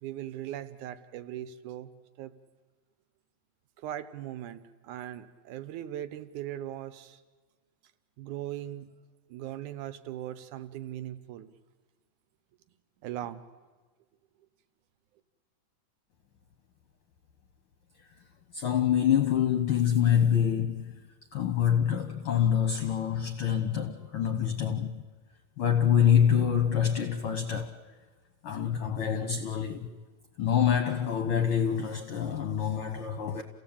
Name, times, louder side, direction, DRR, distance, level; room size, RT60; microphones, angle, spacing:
voice 1, 0.0-1.9 2.2-2.3 3.8-7.2 8.2-8.9 9.3-11.5 13.0-13.4, right 12 dB, 75° right, 2.4 m, -39 dB
voice 2, 18.5-25.0 25.6-27.8 28.4-29.9 30.4-33.4, left 9 dB, 55° left, 1.6 m, -26 dB
29.0 x 16.5 x 8.8 m
omnidirectional pair, 3.7 m